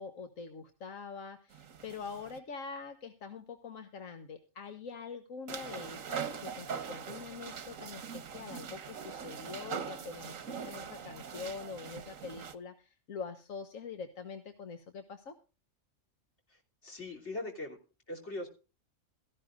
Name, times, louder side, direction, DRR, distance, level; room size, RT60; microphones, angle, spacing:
voice 1, 0.0-15.3, left 5 dB, 80° left, 7 dB, 1.6 m, -44 dB
sound 1, 1.5-2.4 5.5-12.6, right 7 dB, 85° right, 1.5 m, -42 dB
voice 2, 16.5-17.8 18.1-18.5, left 2 dB, 60° left, 0 dB, 3.5 m, -41 dB
16.5 x 14.0 x 2.5 m, 0.33 s
omnidirectional pair, 1.3 m